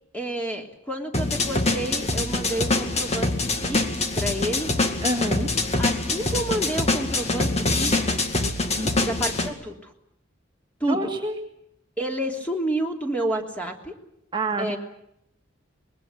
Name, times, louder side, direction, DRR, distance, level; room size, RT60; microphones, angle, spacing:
voice 1, 0.1-4.7 5.8-8.2 9.0-9.9 10.8-11.0 12.0-13.9 14.6-14.8, right 1 dB, 5° left, 2 dB, 3.2 m, -30 dB
sound 1, 1.1-9.5, left 2 dB, 35° left, 2.2 m, -24 dB
voice 2, 5.0-5.5 8.8-9.2 10.9-11.4 14.3-14.8, right 1 dB, 25° right, 2 dB, 1.9 m, -27 dB
24.5 x 21.5 x 7.6 m, 0.79 s
head